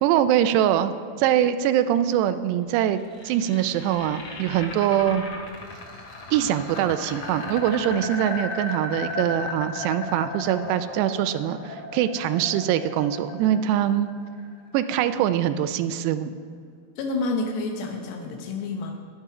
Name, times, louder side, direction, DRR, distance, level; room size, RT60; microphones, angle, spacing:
voice 1, 0.0-0.9 1.2-3.0 3.2-5.2 6.3-14.1 14.7-16.3, right 11 dB, 90° right, 10 dB, 2.7 m, -23 dB
sound 1, 2.8-14.8, left 3 dB, 45° left, 2.0 m, -36 dB
voice 2, 17.0-18.9, left 3 dB, 85° left, 2 dB, 3.0 m, -29 dB
11.0 x 11.0 x 4.9 m, 2.2 s
omnidirectional pair, 4.8 m